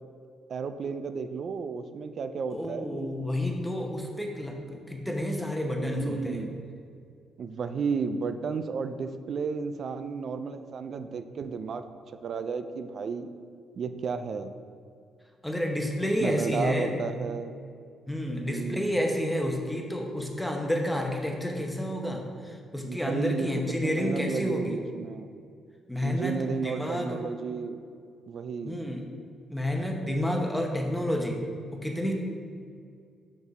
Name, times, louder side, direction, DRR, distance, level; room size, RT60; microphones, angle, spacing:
voice 1, 0.5-3.1 5.8-6.6 7.4-11.8 12.2-13.3 13.8-14.6 16.2-17.5 18.4-19.0 22.8-25.3 26.0-27.8 28.3-28.8, right 5 dB, 55° right, 9 dB, 0.3 m, -33 dB
voice 2, 2.5-6.4 15.4-16.9 18.1-24.8 25.9-27.2 28.6-29.0 29.5-31.4 31.7-32.1, left 1 dB, 5° left, 2 dB, 0.8 m, -30 dB
5.2 x 5.0 x 3.9 m, 2.3 s
cardioid pair, 90°, 0 cm